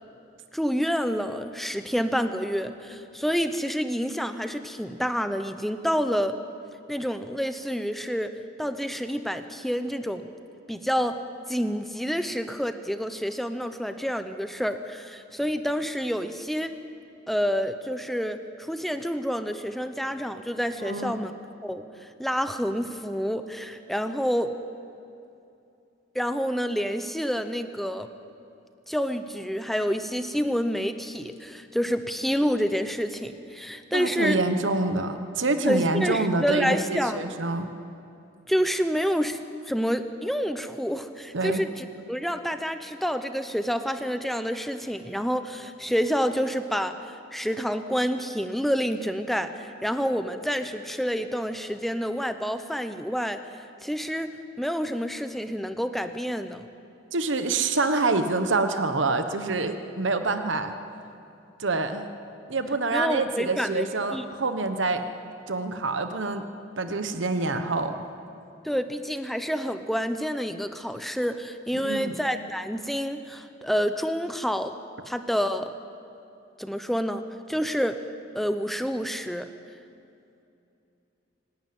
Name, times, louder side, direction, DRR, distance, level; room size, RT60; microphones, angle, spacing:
voice 1, 0.5-6.4 6.9-8.3 8.6-10.3 10.7-11.2 11.5-16.7 17.3-21.3 21.6-24.5 26.1-28.1 28.9-34.4 35.6-37.3 38.5-39.4 39.7-53.4 53.8-54.3 54.6-56.6 62.9-64.2 68.6-74.7 75.1-75.7 76.6-78.0 78.3-79.5, equal, ahead, 9 dB, 0.7 m, -28 dB
voice 2, 20.8-21.1 33.9-37.7 41.3-41.6 57.1-60.7 61.6-62.1 62.5-65.0 65.5-66.4 66.8-68.0 71.7-72.1, right 3 dB, 65° right, 8 dB, 1.2 m, -26 dB
25.5 x 12.0 x 9.4 m, 2.7 s
head